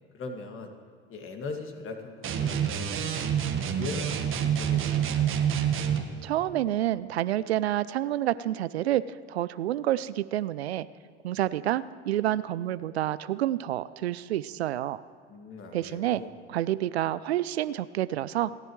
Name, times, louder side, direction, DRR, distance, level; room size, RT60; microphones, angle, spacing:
voice 1, 0.1-0.7 1.1-3.2 3.7-5.3 15.3-16.3, left 3 dB, 40° left, 4 dB, 2.2 m, -40 dB
sound 1, 2.2-6.1, right 9 dB, 40° right, 1.5 m, -27 dB
voice 2, 6.2-10.9 11.2-15.0 15.7-16.2 16.5-18.5, right 13 dB, 85° right, 17 dB, 0.5 m, -28 dB
29.0 x 10.5 x 3.2 m, 2.1 s
hypercardioid pair, 75°, 31 cm